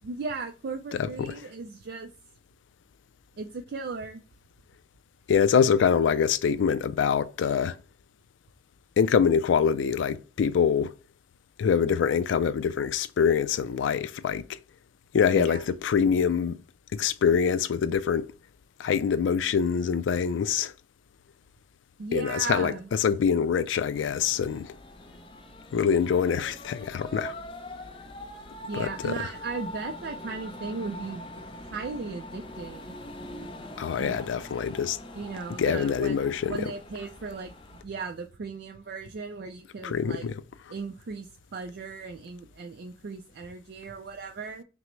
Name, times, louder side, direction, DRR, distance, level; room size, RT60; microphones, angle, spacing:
voice 1, 0.0-2.1 3.4-4.2 15.3-15.6 22.0-22.9 28.7-31.3 31.6-32.9 34.0-34.2 35.1-40.3 40.7-44.6, right 4 dB, 60° right, 0.4 m, -37 dB
voice 2, 1.0-1.3 5.3-7.8 9.0-10.9 11.6-14.4 15.1-16.6 16.9-18.3 18.8-20.7 22.1-24.7 25.7-27.3 28.7-29.1 33.8-35.0 35.6-36.7 39.8-40.3, left 7 dB, 80° left, 0.3 m, -25 dB
sound 1, 23.9-37.8, left 1 dB, 25° left, 0.5 m, -43 dB
5.7 x 2.1 x 3.1 m
head